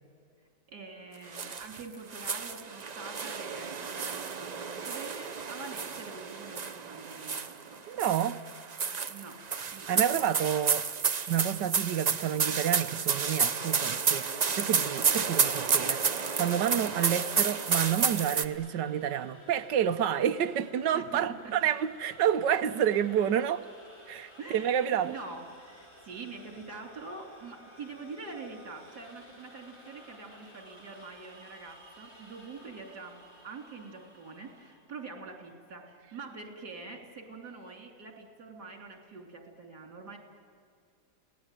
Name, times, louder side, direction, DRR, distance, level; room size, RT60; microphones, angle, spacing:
voice 1, 0.7-8.0 8.7-9.4 9.7-9.9 10.2-10.3 16.7-16.9 20.9-21.3 24.4-40.2, right 4 dB, 65° right, 3.9 m, -45 dB
sound 1, 1.3-1.8 2.1-7.6 8.0-18.4, right 5 dB, 40° right, 0.6 m, -30 dB
voice 2, 7.9-8.4 9.9-10.8 11.3-14.3 14.6-23.6 24.1-25.1, right 9 dB, 90° right, 1.5 m, -29 dB
sound 2, 16.1-34.7, equal, 15° left, 7.8 m, -54 dB
29.5 x 18.5 x 9.2 m
omnidirectional pair, 1.9 m